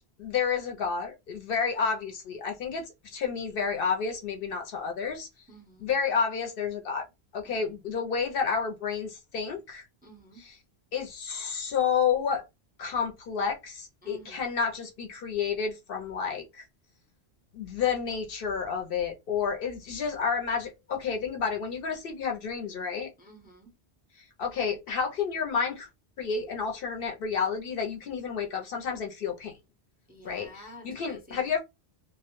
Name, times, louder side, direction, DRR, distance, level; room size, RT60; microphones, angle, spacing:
voice 1, 0.2-5.3 5.8-7.1 7.3-9.9 10.4-10.6 10.9-12.5 12.8-16.7 17.5-23.1 24.2-25.9 26.2-29.6 30.2-31.6, left 6 dB, 65° left, 0.7 m, -30 dB
voice 2, 5.5-5.9 7.4-7.6 10.0-10.4 14.0-14.4 23.2-23.7 30.1-31.4, equal, 10° right, 0.5 m, -51 dB
2.1 x 2.0 x 2.9 m
omnidirectional pair, 1.1 m